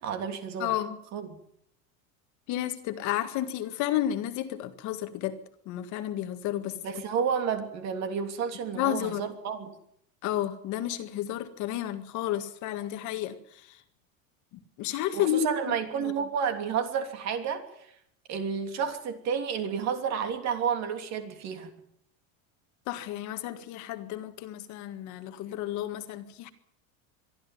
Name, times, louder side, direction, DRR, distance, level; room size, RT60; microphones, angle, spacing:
voice 1, 0.0-0.7 1.1-1.3 6.8-9.8 15.1-17.6 18.3-21.7, right 7 dB, 40° right, 7 dB, 3.2 m, -31 dB
voice 2, 0.6-1.0 2.5-5.4 5.7-6.8 8.7-9.2 10.2-13.8 14.8-16.1 22.9-26.5, left 12 dB, 45° left, 9 dB, 1.8 m, -31 dB
23.0 x 13.0 x 9.2 m, 0.70 s
cardioid pair, 165°, 40 cm